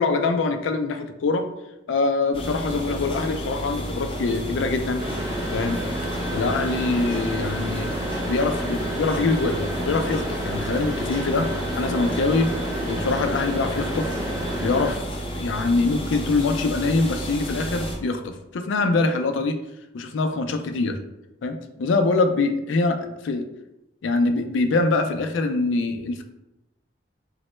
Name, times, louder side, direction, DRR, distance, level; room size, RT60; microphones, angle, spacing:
voice 1, 0.0-1.5 1.9-5.0 5.5-5.8 6.3-7.9 8.2-12.5 12.9-14.1 14.6-19.6 19.9-21.0 21.4-23.5 24.0-26.2, left 3 dB, 80° left, 7 dB, 0.4 m, -24 dB
sound 1, 2.3-18.0, right 1 dB, 30° left, 0.5 m, -32 dB
Mechanisms, 5.0-14.9, equal, 20° right, 0.7 m, -30 dB
3.1 x 2.1 x 3.0 m, 0.91 s
head